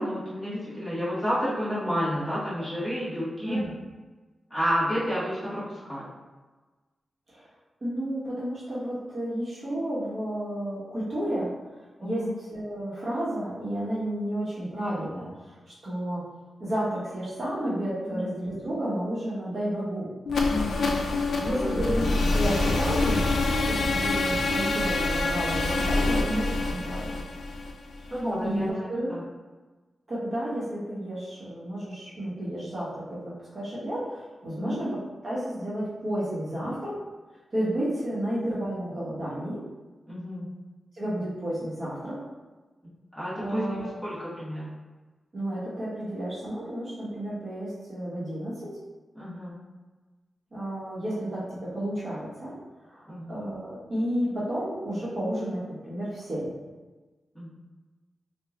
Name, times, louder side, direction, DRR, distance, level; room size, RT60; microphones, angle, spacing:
voice 1, 0.0-3.6 4.5-6.1 12.0-12.3 18.1-18.3 20.5-21.0 21.3-21.7 28.1-29.2 34.5-34.8 40.1-40.4 43.1-43.6 44.0-44.7 49.1-49.5 53.1-53.3 57.3-57.5, equal, ahead, -11 dB, 1.4 m, -30 dB
voice 2, 7.8-11.5 12.0-15.6 15.8-16.3 16.6-20.1 21.4-23.3 23.7-27.2 28.0-28.1 28.4-29.1 30.1-37.0 37.5-39.6 40.9-42.2 43.3-44.0 45.3-48.7 50.5-52.5 52.8-56.5, right 1 dB, 45° right, -9 dB, 1.0 m, -31 dB
sound 1, 20.3-28.2, left 2 dB, 80° left, 0.4 m, -26 dB
3.0 x 2.3 x 3.6 m, 1.3 s
wide cardioid pair, 155°, 0 cm